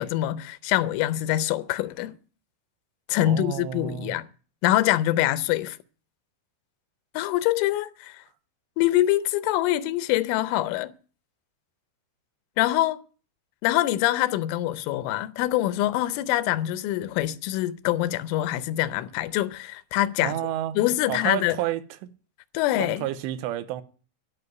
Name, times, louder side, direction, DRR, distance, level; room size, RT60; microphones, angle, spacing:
voice 1, 0.0-2.2 3.1-4.3 4.6-5.8 7.1-8.2 8.8-10.9 12.6-13.0 13.6-20.4 20.8-21.6 22.5-23.1, left 14 dB, 85° left, 3.2 m, -24 dB
voice 2, 3.2-4.2 20.2-20.8 21.1-22.1 22.8-23.8, right 12 dB, 80° right, 2.9 m, -30 dB
13.5 x 5.8 x 9.5 m
omnidirectional pair, 5.5 m